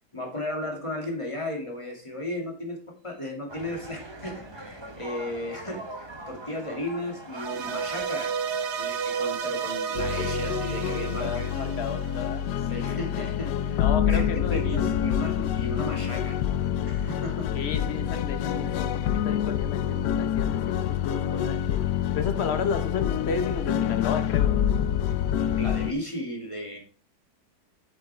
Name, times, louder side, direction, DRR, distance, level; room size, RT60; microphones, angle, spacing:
voice 1, 0.1-11.4 12.7-13.8 14.1-16.4 16.8-17.6 25.3-26.8, left 1 dB, 20° left, 0 dB, 2.4 m, -35 dB
sound 1, 3.5-10.3, right 1 dB, 20° right, 0.9 m, -43 dB
sound 2, 7.3-12.6, right 6 dB, 50° right, 0.9 m, -32 dB
sound 3, 9.9-25.9, left 10 dB, 85° left, 1.2 m, -27 dB
voice 2, 11.2-12.4 13.8-14.8 17.5-21.8 22.1-24.5, left 5 dB, 45° left, 8 dB, 1.3 m, -33 dB
8.4 x 7.4 x 3.4 m, 0.38 s
omnidirectional pair, 1.8 m